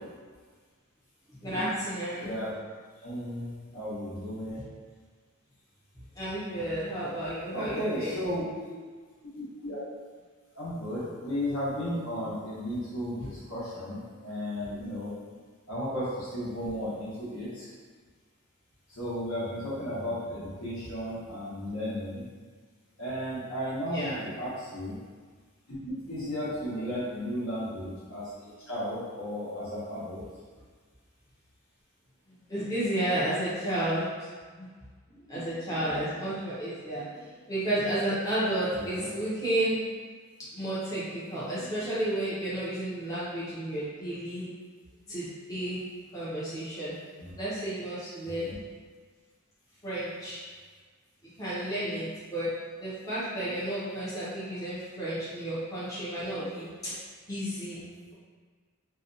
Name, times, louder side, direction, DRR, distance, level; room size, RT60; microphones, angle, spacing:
voice 1, 1.4-2.3 6.1-8.2 14.7-14.8 23.9-24.2 26.8-26.9 32.5-34.7 35.1-39.8 40.5-44.5 45.1-45.8 46.1-46.9 47.4-48.5 49.8-50.4 51.2-57.0 57.3-58.1, right 1 dB, 15° left, -11 dB, 0.6 m, -32 dB
voice 2, 2.2-2.5 3.0-4.6 7.5-8.7 9.3-9.8 10.5-15.1 15.7-17.7 18.9-22.3 23.0-25.0 25.7-30.2 38.8-39.1 47.2-47.3 48.2-48.6, equal, 70° left, -8 dB, 0.9 m, -34 dB
2.6 x 2.2 x 2.5 m, 1.5 s
head